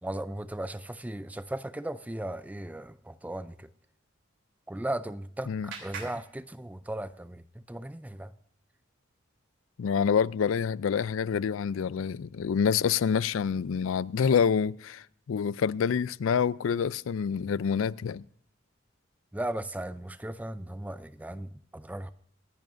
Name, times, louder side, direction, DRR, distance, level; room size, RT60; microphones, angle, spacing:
voice 1, 0.0-3.7 4.7-8.3 19.3-22.1, right 1 dB, 10° right, 0.4 m, -37 dB
Clapping, 4.6-7.2, right 5 dB, 65° right, 3.2 m, -47 dB
voice 2, 9.8-18.2, left 6 dB, 80° left, 0.4 m, -27 dB
26.5 x 10.5 x 2.6 m
head